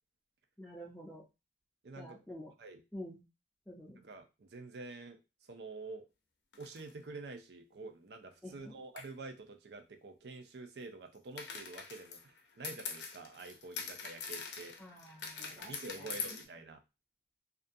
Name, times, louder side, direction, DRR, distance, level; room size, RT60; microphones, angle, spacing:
voice 1, 0.6-1.2 2.0-2.5 2.9-3.2 3.7-4.0 8.4-8.8 14.8-16.4, equal, 5° left, -7 dB, 0.5 m, -49 dB
voice 2, 1.8-2.2 2.6-2.8 3.9-5.2 5.5-6.1 6.6-14.8 15.5-16.8, right 3 dB, 70° right, 7 dB, 0.5 m, -48 dB
sound 1, 6.5-6.9 9.0-9.1 11.4-16.4, left 5 dB, 80° left, 0.5 m, -43 dB
2.4 x 2.2 x 2.6 m, 0.26 s
head